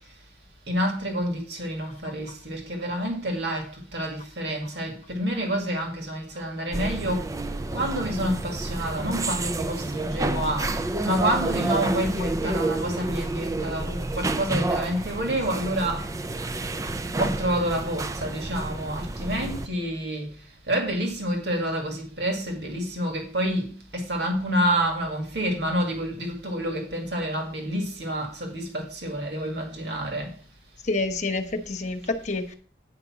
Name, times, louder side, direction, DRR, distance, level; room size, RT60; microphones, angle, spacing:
voice 1, 0.7-7.2 7.7-10.7 11.0-16.0 17.2-20.3 20.7-30.3, right 1 dB, 70° right, 2.1 m, -28 dB
sound 1, 6.7-19.7, right 2 dB, 20° right, 0.4 m, -29 dB
voice 2, 30.8-32.5, left 2 dB, 40° left, 1.1 m, -28 dB
9.7 x 5.3 x 5.9 m
head